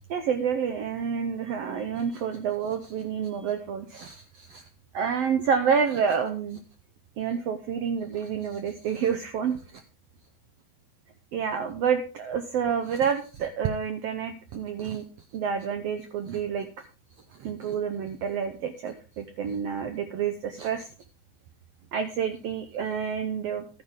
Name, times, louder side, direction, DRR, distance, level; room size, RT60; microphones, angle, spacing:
voice 1, 0.1-4.6 4.9-6.6 7.2-9.6 11.3-15.0 15.3-16.7 17.4-20.9 21.9-23.8, right 7 dB, 80° right, 8 dB, 1.4 m, -28 dB
12.0 x 9.9 x 3.6 m, 0.35 s
omnidirectional pair, 3.8 m